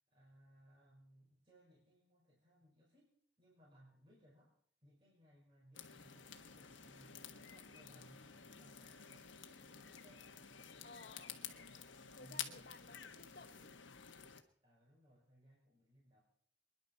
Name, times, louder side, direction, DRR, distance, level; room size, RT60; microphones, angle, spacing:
voice 1, 0.1-4.6 4.8-10.4 12.2-13.1 14.6-16.2, right 1 dB, 25° right, -6 dB, 5.4 m, -66 dB
sound 1, 5.7-14.4, left 8 dB, 80° left, 1.5 m, -51 dB
voice 2, 10.8-11.4 12.1-13.8, left 3 dB, 50° left, 11 dB, 1.0 m, -58 dB
27.5 x 11.0 x 4.5 m, 0.62 s
head